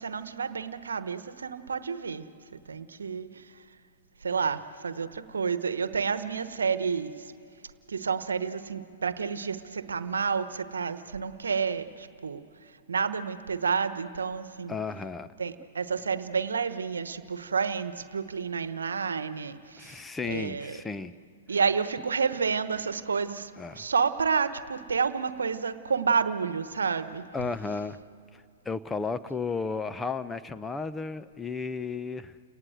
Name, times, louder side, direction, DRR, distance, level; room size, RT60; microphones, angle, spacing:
voice 1, 0.0-3.6 4.2-7.3 7.9-14.8 15.4-20.8 21.5-27.3, right 5 dB, 80° right, 13 dB, 1.1 m, -30 dB
voice 2, 14.7-15.3 19.8-21.1 23.6-23.9 27.3-28.0 28.6-32.4, left 4 dB, 10° left, 12 dB, 0.8 m, -33 dB
30.0 x 19.0 x 7.9 m, 2.5 s
figure-of-eight pair, 110°, 0 cm